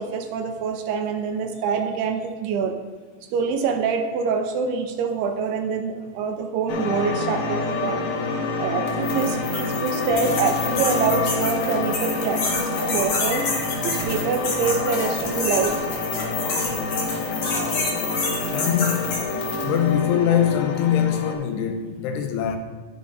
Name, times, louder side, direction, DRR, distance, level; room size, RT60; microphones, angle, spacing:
voice 1, 0.0-2.8 3.3-8.1 8.6-13.5 13.8-15.7, right 5 dB, 80° right, 2.7 m, -25 dB
sound 1, 6.7-21.3, left 3 dB, 70° left, 2.1 m, -28 dB
sound 2, 8.9-19.8, left 3 dB, 55° left, 2.1 m, -28 dB
voice 2, 18.5-19.2 19.6-22.6, left 9 dB, 90° left, 2.9 m, -22 dB
13.5 x 6.4 x 2.7 m
omnidirectional pair, 4.7 m